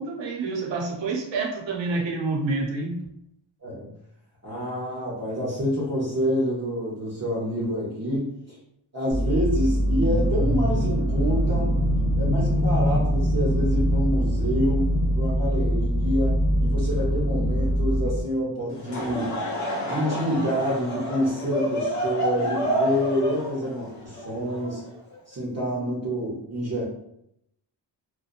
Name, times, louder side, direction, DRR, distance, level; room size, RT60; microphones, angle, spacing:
voice 1, 0.0-3.0, right 3 dB, 70° right, 0 dB, 0.7 m, -28 dB
voice 2, 4.4-8.6 8.9-11.8 12.2-19.4 19.8-24.8 25.3-26.8, equal, 35° right, -6 dB, 0.8 m, -27 dB
motorboat passes underwater sound, 9.1-18.2, equal, 10° right, 1.1 m, -23 dB
Laughter / Crowd, 18.7-25.1, equal, 40° left, 0.7 m, -29 dB
2.8 x 2.2 x 2.5 m, 0.76 s
cardioid pair, 90°, 46 cm